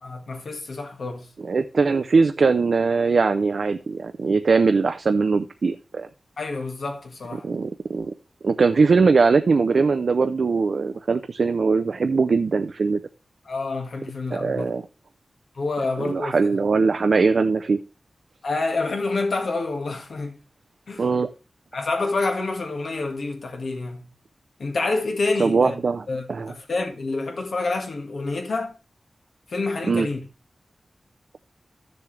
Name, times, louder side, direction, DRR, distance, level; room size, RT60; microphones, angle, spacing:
voice 1, 0.0-1.3 6.4-7.4 13.4-14.7 15.5-16.3 18.4-20.4 20.9-21.0 21.7-24.0 24.6-25.7 26.1-28.7 29.5-30.2, left 3 dB, 75° left, 1.7 m, -27 dB
voice 2, 1.4-6.1 7.4-8.1 8.4-13.0 14.3-14.9 16.0-17.8 21.0-21.3 25.4-26.5 29.9-30.1, right 4 dB, 65° right, 0.5 m, -21 dB
13.0 x 6.9 x 3.2 m
wide cardioid pair, 120°, 0 cm